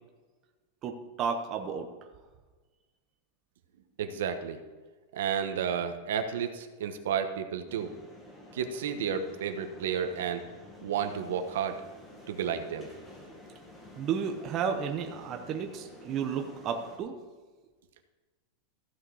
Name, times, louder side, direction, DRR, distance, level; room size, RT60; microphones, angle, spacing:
voice 1, 0.8-1.9 14.0-17.1, right 7 dB, 25° right, 4 dB, 0.7 m, -32 dB
voice 2, 4.0-4.6 5.1-7.9 8.5-10.5 10.8-11.7 12.3-12.9, right 7 dB, 70° right, 7 dB, 1.1 m, -32 dB
sound 1, 7.7-17.0, left 1 dB, 10° left, 1.5 m, -51 dB
14.5 x 6.5 x 4.8 m, 1.3 s
supercardioid pair, 175°, 0 cm